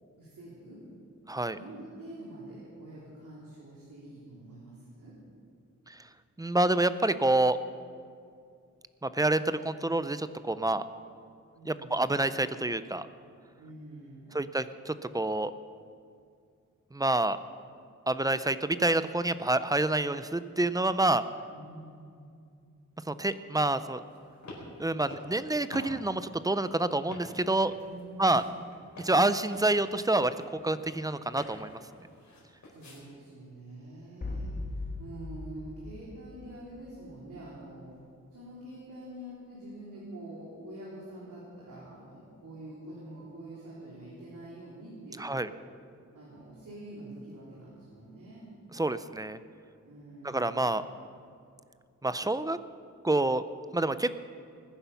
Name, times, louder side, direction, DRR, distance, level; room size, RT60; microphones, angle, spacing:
voice 1, 0.2-0.8 1.5-5.1 11.5-12.1 13.6-14.4 21.5-22.3 27.8-28.4 32.7-37.8 38.3-45.6 46.1-48.5 49.8-50.8, right 1 dB, 75° right, -7 dB, 3.6 m, -46 dB
voice 2, 1.3-1.6 5.9-6.0 6.4-7.6 9.0-10.8 11.7-13.1 14.3-15.5 16.9-17.4 18.1-21.2 23.1-24.0 24.8-27.7 28.2-28.4 29.0-31.8 45.2-45.5 48.7-49.4 50.2-50.8 52.0-52.6 53.0-53.4 53.7-54.2, right 2 dB, 10° right, 13 dB, 0.4 m, -27 dB
sound 1, 24.0-33.0, left 1 dB, 65° left, 4.5 m, -49 dB
sound 2, 34.2-37.1, left 2 dB, 30° left, 1.4 m, -39 dB
20.5 x 10.0 x 5.7 m, 2.4 s
wide cardioid pair, 175°, 31 cm